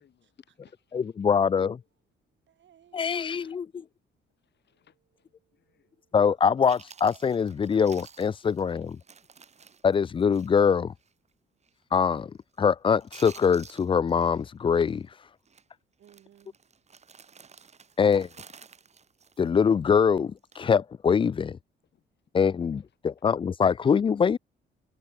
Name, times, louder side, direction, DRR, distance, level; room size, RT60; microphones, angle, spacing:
voice 1, 0.0-1.5 1.8-1.9 2.9-3.0 3.3-3.9 4.4-5.9 8.7-8.9 21.9-22.1, left 9 dB, 60° left, 4.9 m, -66 dB
voice 2, 0.9-1.8 2.9-3.7 6.1-8.9 9.8-10.9 11.9-15.1 18.0-18.3 19.4-21.6 22.3-24.4, left 6 dB, 25° left, 0.3 m, -23 dB
voice 3, 2.5-3.6 4.7-4.9 5.4-6.2 16.0-16.6, right 10 dB, 65° right, 6.0 m, -60 dB
Chewing mastication, 6.3-6.4 6.7-10.7 11.0-11.1 11.6-11.9 12.2-12.7 13.0-14.5 14.7-15.0 15.5-15.6 16.0-20.0 20.4-20.6, right 6 dB, 35° right, 1.3 m, -52 dB
cardioid pair, 90°, 20 cm